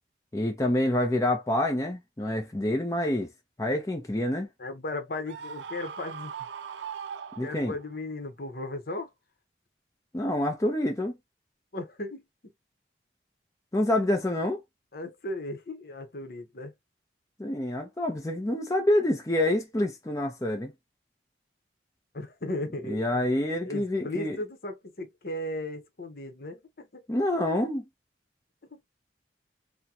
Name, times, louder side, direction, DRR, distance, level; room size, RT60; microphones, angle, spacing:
voice 1, 0.3-3.3 3.6-4.5 7.4-7.7 10.1-11.1 13.7-14.6 17.4-20.7 22.9-24.4 27.1-27.8, left 1 dB, 20° left, 0.6 m, -27 dB
voice 2, 4.6-6.3 7.4-9.1 11.7-12.5 14.9-16.7 22.1-23.2 23.6-27.0 28.7-28.8, left 2 dB, 55° left, 0.9 m, -36 dB
Screaming, 5.3-8.0, right 7 dB, 80° right, 0.4 m, -40 dB
3.6 x 2.2 x 2.8 m
head